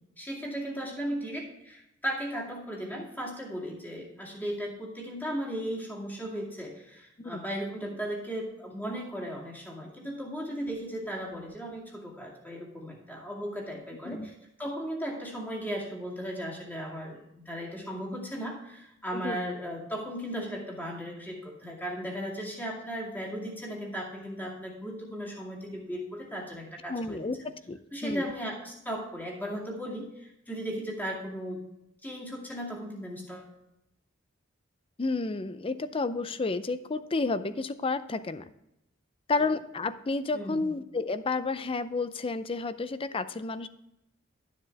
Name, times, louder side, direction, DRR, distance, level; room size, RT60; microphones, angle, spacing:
voice 1, 0.2-14.3 14.6-27.3 27.9-31.6 32.0-33.5 40.3-40.6, equal, 10° left, -3 dB, 2.3 m, -36 dB
voice 2, 26.9-28.3 35.0-38.4 39.3-43.7, left 3 dB, 30° left, 13 dB, 0.5 m, -31 dB
12.0 x 7.4 x 3.4 m, 0.85 s
head